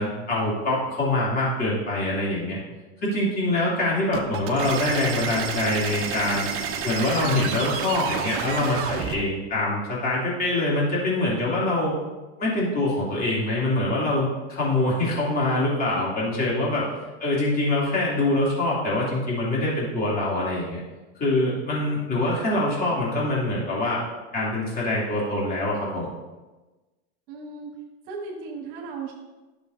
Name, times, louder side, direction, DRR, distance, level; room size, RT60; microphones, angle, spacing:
voice 1, 0.0-2.6 3.0-6.5 6.8-11.9 12.4-16.9 17.2-20.8 21.2-24.0 24.3-26.1, left 2 dB, 25° left, -6 dB, 2.9 m, -24 dB
sound 1, 4.1-9.2, right 7 dB, 40° right, 1.2 m, -30 dB
voice 2, 27.3-27.7 28.1-29.1, right 4 dB, 60° right, -2 dB, 1.7 m, -36 dB
11.5 x 6.7 x 2.7 m, 1.2 s
supercardioid pair, 120°, 33 cm